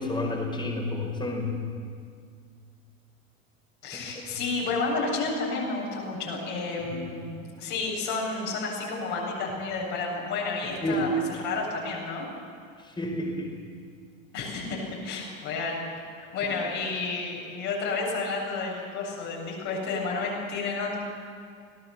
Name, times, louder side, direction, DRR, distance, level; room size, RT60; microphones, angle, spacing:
voice 1, 0.0-1.6 3.9-4.4 6.8-7.0 10.8-11.2 13.0-13.5, left 1 dB, 10° left, 1 dB, 4.9 m, -30 dB
voice 2, 3.8-11.1 11.4-12.3 14.3-15.8 16.2-21.0, left 3 dB, 45° left, -2 dB, 7.9 m, -31 dB
26.0 x 18.0 x 7.1 m, 2.2 s
figure-of-eight pair, 80°, 41 cm